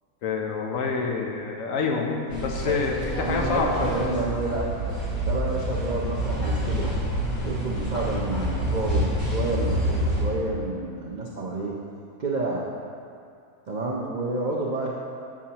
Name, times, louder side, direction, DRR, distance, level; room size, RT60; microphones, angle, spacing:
voice 1, 0.2-3.9, left 4 dB, 65° left, 1 dB, 1.0 m, -27 dB
sound 1, 2.3-10.2, equal, 45° left, 2.2 m, -27 dB
voice 2, 3.2-4.7 5.2-6.9 7.4-11.7 12.2-12.6 13.7-14.9, right 2 dB, 65° right, -4 dB, 0.4 m, -29 dB
7.2 x 7.1 x 2.8 m, 2.4 s
omnidirectional pair, 1.6 m